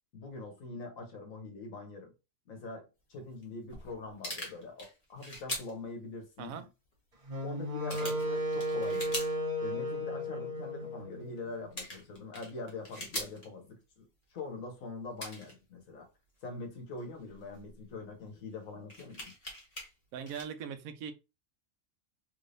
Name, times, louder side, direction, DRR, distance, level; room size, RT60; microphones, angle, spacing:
voice 1, 0.1-2.1 2.5-6.6 7.4-9.2 9.6-14.0 14.3-16.1 16.4-19.3, left 3 dB, 80° left, 1.5 m, -43 dB
sound 1, 3.4-3.5 3.7-5.7 6.8-6.9 7.3-7.4 7.9-9.4 9.8-9.9 11.4-11.5 11.7-13.5 14.4-14.5 15.2-15.5 16.7-17.7 18.3-18.4 18.9-19.9 20.3-20.4, left 1 dB, 30° left, 1.3 m, -42 dB
Wind instrument woodwind instrument, 7.3-11.5, equal, 35° right, 0.9 m, -34 dB
voice 2, 20.1-21.1, right 7 dB, 90° right, 1.0 m, -40 dB
3.5 x 3.3 x 2.6 m
omnidirectional pair, 1.4 m